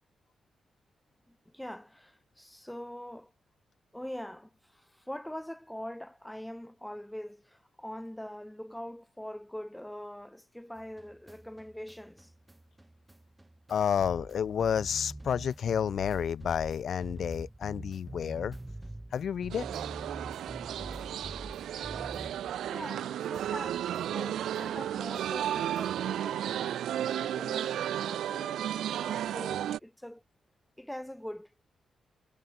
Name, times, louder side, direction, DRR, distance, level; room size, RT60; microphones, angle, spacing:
voice 1, 1.3-3.3 3.9-12.3 22.0-22.3 22.7-28.7 29.0-30.2 30.8-31.5, left 1 dB, 5° left, 3.1 m, -43 dB
sound 1, 10.8-23.0 23.3-26.1, right 1 dB, 10° right, 2.7 m, -46 dB
voice 2, 13.7-18.6 19.1-19.6, left 8 dB, 65° left, 1.0 m, -30 dB
sound 2, 19.5-29.8, right 11 dB, 90° right, 0.4 m, -33 dB
cardioid pair, 90°, 0 cm